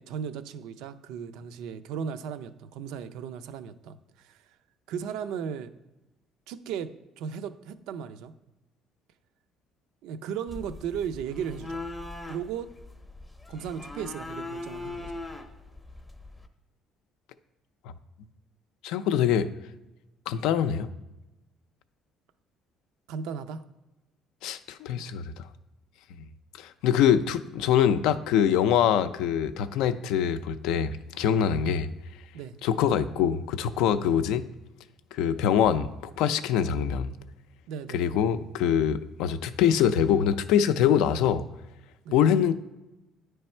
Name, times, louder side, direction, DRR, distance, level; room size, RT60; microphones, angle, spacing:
voice 1, 0.0-4.4 4.9-5.7 6.5-8.3 10.0-11.8 12.3-12.7 13.5-15.1 23.1-23.6 24.9-25.0 31.4-31.6 32.3-32.6 34.0-34.2 37.7-38.0 42.0-42.2, right 7 dB, 85° right, 11 dB, 0.4 m, -36 dB
sound 1, 10.5-16.5, left 2 dB, 10° left, 0.5 m, -40 dB
voice 2, 18.8-19.5 20.3-20.9 24.4-25.5 26.2-26.3 26.6-31.9 32.6-34.4 35.1-37.1 37.9-41.4 42.1-42.5, left 9 dB, 85° left, 11 dB, 0.4 m, -24 dB
9.7 x 3.3 x 4.3 m, 1.0 s
cardioid pair, 135°, 0 cm